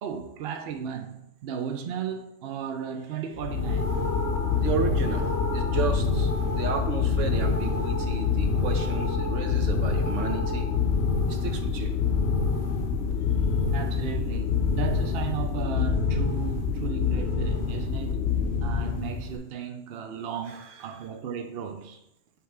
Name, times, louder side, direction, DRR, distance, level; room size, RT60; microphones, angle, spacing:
voice 1, 0.0-4.0 11.2-11.4 13.0-13.2 13.7-18.2 18.6-22.0, right 7 dB, 60° right, 0.7 m, -35 dB
sound 1, 3.4-19.4, left 5 dB, 65° left, 1.0 m, -26 dB
voice 2, 4.6-10.7 11.3-11.9 20.5-20.6, right 6 dB, 80° right, 1.1 m, -33 dB
5.7 x 3.2 x 5.7 m
omnidirectional pair, 1.3 m